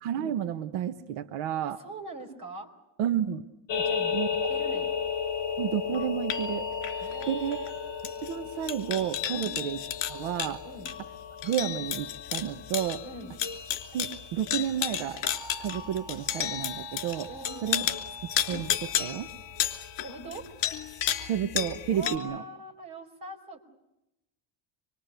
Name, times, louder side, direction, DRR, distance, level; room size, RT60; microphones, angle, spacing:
voice 1, 0.0-1.8 3.0-3.4 4.1-4.5 5.6-6.7 7.3-7.6 8.2-9.8 10.1-10.6 11.4-13.0 13.9-15.2 15.6-17.3 17.6-17.8 18.5-19.3 21.3-22.4, right 10 dB, 85° right, 9 dB, 1.3 m, -31 dB
voice 2, 1.6-2.7 3.7-4.1 4.5-4.9 7.0-7.7 9.3-9.5 10.6-10.9 13.0-13.3 17.3-17.9 20.0-20.4 21.9-23.6, right 2 dB, 45° right, 4 dB, 4.8 m, -41 dB
sound 1, 3.7-22.2, left 8 dB, 55° left, 3.0 m, -32 dB
26.0 x 23.5 x 8.2 m, 0.88 s
cardioid pair, 175°, 50 cm